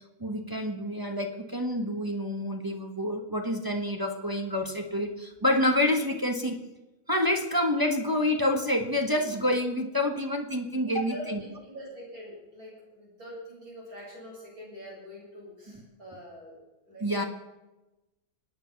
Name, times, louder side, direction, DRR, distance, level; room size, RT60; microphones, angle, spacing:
voice 1, 0.2-6.6 7.1-11.4 15.7-15.8 17.0-17.2, left 1 dB, 15° right, 3 dB, 1.1 m, -28 dB
voice 2, 10.8-16.5 16.9-17.1, equal, 65° right, -5 dB, 8.2 m, -44 dB
25.5 x 9.2 x 5.9 m, 1.0 s
omnidirectional pair, 1.7 m